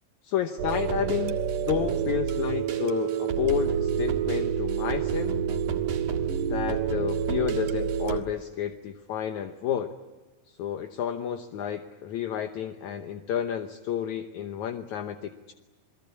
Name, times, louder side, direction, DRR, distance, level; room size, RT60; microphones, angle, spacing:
voice 1, 0.2-5.3 6.5-10.0 10.5-15.5, left 10 dB, 70° left, 7 dB, 1.9 m, -31 dB
sound 1, 0.6-8.2, right 8 dB, 60° right, 3.0 m, -28 dB
28.5 x 21.0 x 8.4 m, 1.2 s
omnidirectional pair, 4.4 m